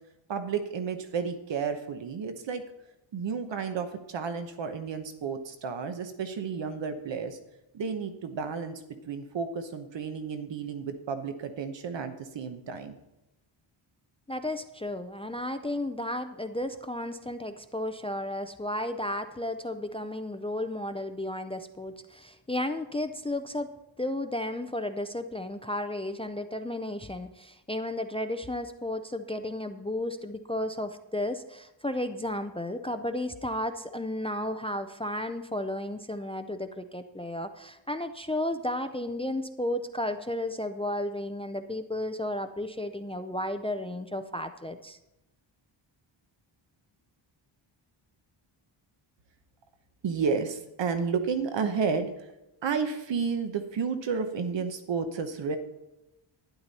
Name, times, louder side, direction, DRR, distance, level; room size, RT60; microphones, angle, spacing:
voice 1, 0.3-2.6 3.1-7.4 7.7-8.8 9.1-12.9 50.0-52.1 52.6-55.6, right 5 dB, 60° right, 8 dB, 1.0 m, -31 dB
voice 2, 14.3-23.7 24.0-45.0, left 1 dB, 15° left, 9 dB, 0.4 m, -33 dB
12.0 x 10.5 x 4.1 m, 0.92 s
wide cardioid pair, 175°, 49 cm